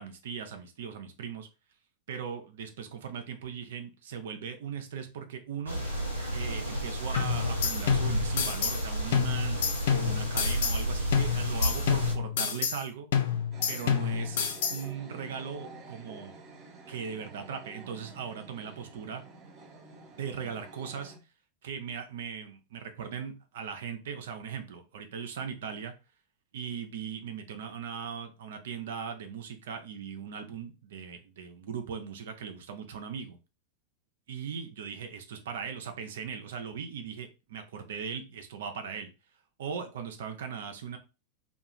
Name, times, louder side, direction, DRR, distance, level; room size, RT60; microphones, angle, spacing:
voice 1, 0.0-1.5 2.1-5.8 6.3-9.6 9.9-13.1 13.7-14.4 14.7-16.4 16.9-19.2 20.2-21.1 21.6-25.9 26.5-33.4 34.3-39.1 39.6-41.0, right 7 dB, 60° right, 6 dB, 0.5 m, -39 dB
sound 1, 5.7-12.1, right 1 dB, 90° left, 0.9 m, -31 dB
sound 2, 7.2-8.8 9.1-10.8 11.1-12.8 13.1-14.8, left 8 dB, 55° left, 0.4 m, -29 dB
sound 3, 13.5-21.2, right 3 dB, 30° right, 0.8 m, -49 dB
2.3 x 2.3 x 2.9 m, 0.30 s
figure-of-eight pair, 90°, 0 cm